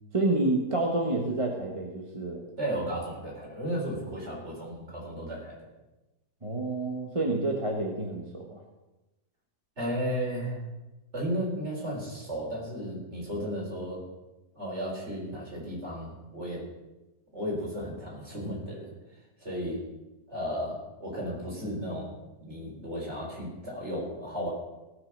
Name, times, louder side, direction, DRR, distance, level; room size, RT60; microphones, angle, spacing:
voice 1, 0.1-2.4 6.4-8.6, right 2 dB, 20° right, 1 dB, 1.3 m, -29 dB
voice 2, 2.6-5.5 9.8-10.6 11.1-14.0 14.5-16.6 17.3-18.9 19.4-19.8 20.3-22.1 22.4-24.5, equal, 45° right, -3 dB, 4.5 m, -34 dB
17.5 x 6.3 x 6.5 m, 1.0 s
omnidirectional pair, 1.6 m